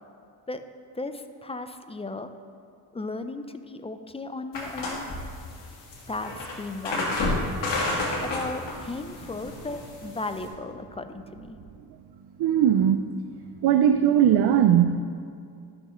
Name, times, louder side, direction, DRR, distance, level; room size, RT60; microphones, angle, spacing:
voice 1, 0.9-2.3 2.9-5.1 6.1-7.4 8.1-11.6, left 2 dB, 15° left, 9 dB, 0.4 m, -35 dB
sound 1, 4.5-10.5, left 2 dB, 80° left, 1.7 m, -31 dB
voice 2, 12.4-13.1 13.6-15.0, right 9 dB, 65° right, 8 dB, 0.5 m, -19 dB
12.0 x 6.2 x 3.1 m, 2.4 s
cardioid pair, 75°, 43 cm